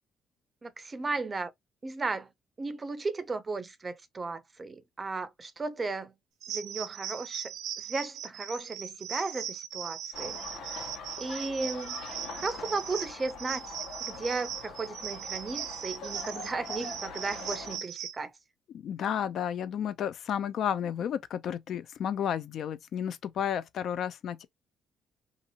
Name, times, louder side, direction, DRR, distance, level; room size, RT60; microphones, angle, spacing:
voice 1, 0.6-1.5 1.8-2.3 2.6-6.1 6.5-7.5 7.8-10.8 11.2-12.0 12.3-13.7 14.0-18.3, right 3 dB, 30° right, 0.5 m, -35 dB
sound 1, 6.4-18.2, right 9 dB, 85° right, 0.6 m, -39 dB
sound 2, 10.1-17.8, left 4 dB, 80° left, 1.1 m, -43 dB
voice 2, 18.7-24.5, left 9 dB, 65° left, 0.4 m, -32 dB
2.7 x 2.5 x 2.7 m
cardioid pair, 100°, 0 cm